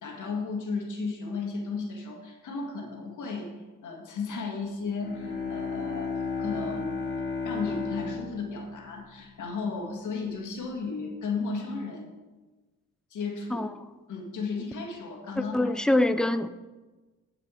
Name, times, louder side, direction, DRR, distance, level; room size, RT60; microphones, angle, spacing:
voice 1, 0.0-3.5 3.8-6.9 7.4-12.1 13.1-13.7 14.1-16.0, left 4 dB, 65° left, 1 dB, 1.9 m, -34 dB
Bowed string instrument, 4.9-9.7, left 4 dB, 35° left, 2.4 m, -34 dB
voice 2, 15.4-16.5, left 1 dB, ahead, 12 dB, 0.4 m, -24 dB
8.2 x 5.0 x 7.5 m, 1.2 s
cardioid pair, 90°, 32 cm